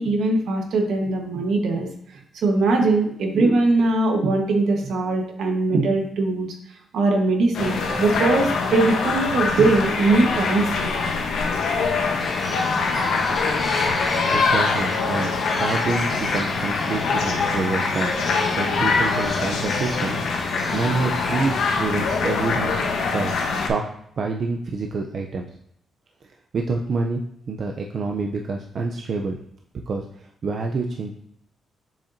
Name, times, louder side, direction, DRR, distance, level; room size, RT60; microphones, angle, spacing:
voice 1, 0.0-1.9 2.3-6.5 6.9-10.9, right 3 dB, 75° right, 3 dB, 1.2 m, -21 dB
sound 1, 7.5-23.7, left 4 dB, 80° left, 0.9 m, -24 dB
Bird, 12.2-21.8, left 1 dB, 15° left, 1.3 m, -34 dB
voice 2, 14.3-20.2 20.7-22.8 23.1-23.9 24.2-25.5 26.5-27.2 27.5-29.4 29.9-31.1, right 3 dB, 45° right, 2 dB, 0.5 m, -27 dB
7.1 x 5.2 x 2.6 m, 0.70 s
cardioid pair, 140°, 0 cm